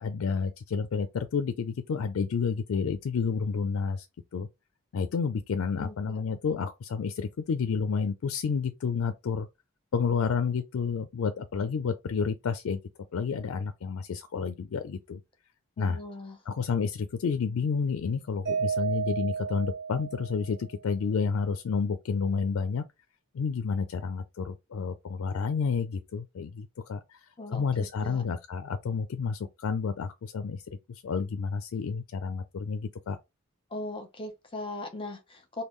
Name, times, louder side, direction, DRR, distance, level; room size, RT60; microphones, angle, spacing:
voice 1, 0.0-4.1 4.3-4.5 4.9-9.5 9.9-12.8 13.1-15.2 15.8-16.0 16.5-22.8 23.3-27.2 27.5-30.6 30.9-33.2, left 5 dB, 75° left, 0.4 m, -30 dB
voice 2, 5.7-6.2 15.8-16.4 27.4-28.2 33.7-35.6, left 2 dB, 25° left, 0.7 m, -39 dB
Mallet percussion, 18.5-20.7, right 6 dB, 55° right, 1.2 m, -32 dB
3.5 x 2.2 x 3.0 m
head